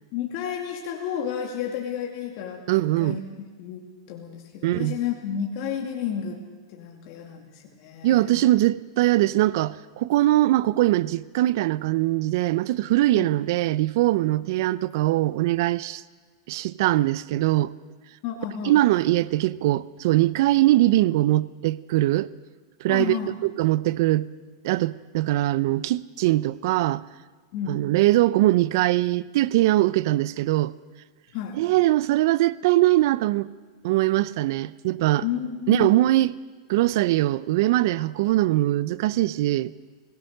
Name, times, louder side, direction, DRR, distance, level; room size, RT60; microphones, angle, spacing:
voice 1, 0.1-2.6 3.0-6.4 6.7-8.4 13.1-13.3 18.2-18.8 22.9-23.3 27.5-27.8 31.3-31.6 35.2-35.9, left 9 dB, 45° left, 2.5 m, -31 dB
voice 2, 2.7-3.2 4.6-5.0 8.0-16.0 16.5-17.7 18.6-22.3 22.8-23.2 23.5-24.3 24.6-27.0 27.7-30.7 31.5-33.5 33.8-35.2 35.7-36.3 36.7-39.7, right 16 dB, 55° right, 0.6 m, -21 dB
23.0 x 17.0 x 6.6 m
supercardioid pair, 150°, 2 cm